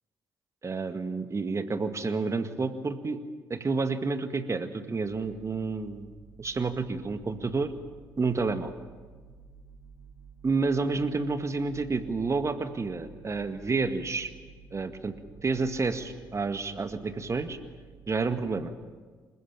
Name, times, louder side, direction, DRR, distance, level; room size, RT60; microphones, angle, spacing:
voice 1, 0.6-3.2 3.5-6.1 6.4-7.7 8.2-8.7 10.4-14.3 14.7-15.1 15.4-17.6 18.1-18.7, right 4 dB, 30° right, 9 dB, 1.9 m, -29 dB
sound 1, 5.0-18.7, right 6 dB, 80° right, 6.5 m, -52 dB
27.0 x 16.0 x 9.0 m, 1.5 s
figure-of-eight pair, 45°, 10 cm